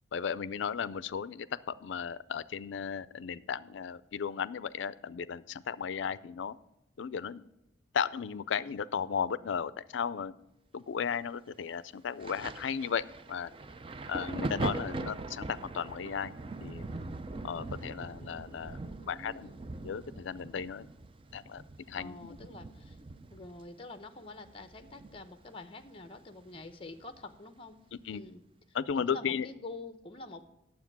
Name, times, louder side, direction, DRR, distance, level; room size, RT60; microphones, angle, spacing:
voice 1, 0.1-6.6 7.0-7.5 7.9-10.3 10.7-13.0 13.3-13.5 14.1-16.3 16.6-16.9 17.4-18.8 19.1-19.5 19.8-20.9 21.3-21.6 21.9-22.4 27.9-28.3 28.7-29.5, left 7 dB, 75° left, 18 dB, 0.4 m, -35 dB
Thunder, 12.2-25.6 25.8-27.2 28.0-28.2, right 2 dB, 25° right, 0.4 m, -41 dB
voice 2, 19.0-19.6 21.9-23.0 23.3-27.8 28.1-28.4 28.9-30.5, left 2 dB, 30° left, 9 dB, 0.7 m, -47 dB
9.5 x 7.6 x 6.0 m, 0.89 s
head